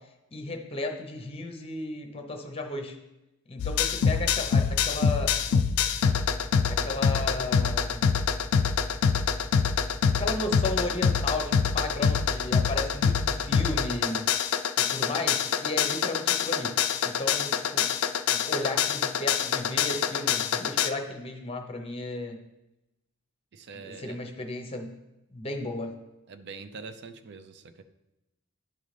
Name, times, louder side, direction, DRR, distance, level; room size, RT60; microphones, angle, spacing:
voice 1, 0.3-3.0 3.5-5.4 6.7-8.1 10.2-14.3 14.8-17.9 18.3-22.4 23.7-25.0 25.3-25.9, left 2 dB, 25° left, 4 dB, 0.7 m, -34 dB
sound 1, 3.6-20.9, left 6 dB, 75° left, 0.4 m, -25 dB
voice 2, 23.5-24.2 26.3-27.8, right 4 dB, 50° right, 10 dB, 0.4 m, -44 dB
10.5 x 3.8 x 3.3 m, 0.95 s
head